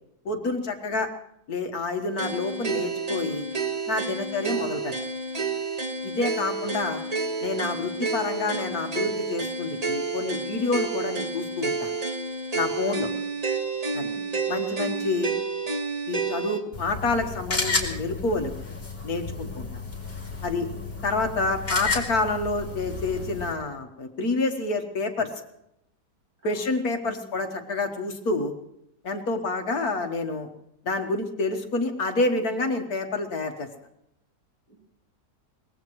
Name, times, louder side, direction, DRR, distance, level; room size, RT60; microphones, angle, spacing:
voice 1, 0.3-1.1 1.5-3.5 3.9-4.9 6.0-7.0 7.4-11.9 12.5-13.1 13.9-14.1 14.5-15.3 16.1-18.5 19.0-19.7 20.4-20.7 21.0-25.3 26.4-28.5 29.0-30.5 30.9-33.7, left 3 dB, 60° left, 5 dB, 1.8 m, -28 dB
sound 1, 2.2-16.6, right 3 dB, 25° right, 1.3 m, -30 dB
voice 2, 6.3-6.7 12.7-13.3 13.9-14.5 19.3-19.8 20.5-21.0 26.4-27.3 29.3-29.8 34.7-34.8, right 3 dB, 60° right, -2 dB, 7.2 m, -50 dB
sound 2, 16.7-23.5, left 3 dB, 35° left, 3.0 m, -32 dB
23.5 x 20.0 x 3.1 m, 0.80 s
omnidirectional pair, 1.8 m